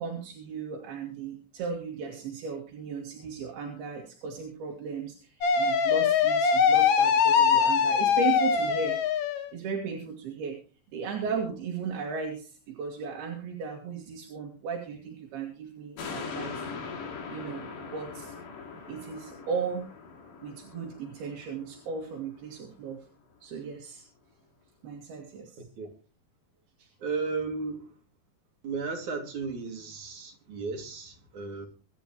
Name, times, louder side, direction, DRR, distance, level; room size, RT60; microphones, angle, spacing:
voice 1, 0.0-9.0 9.5-10.6 10.9-16.6 17.3-18.4 18.9-19.9 20.4-23.1 23.4-24.1 24.8-25.6 26.8-26.9, right 5 dB, 75° right, 4.0 m, -36 dB
sound 1, 5.4-9.5, left 6 dB, 90° left, 1.3 m, -22 dB
sound 2, 16.0-22.6 23.1-23.2, left 5 dB, 55° left, 3.4 m, -41 dB
voice 2, 27.0-27.9 28.6-31.7, right 4 dB, 50° right, 3.6 m, -34 dB
25.5 x 10.0 x 3.1 m
omnidirectional pair, 4.6 m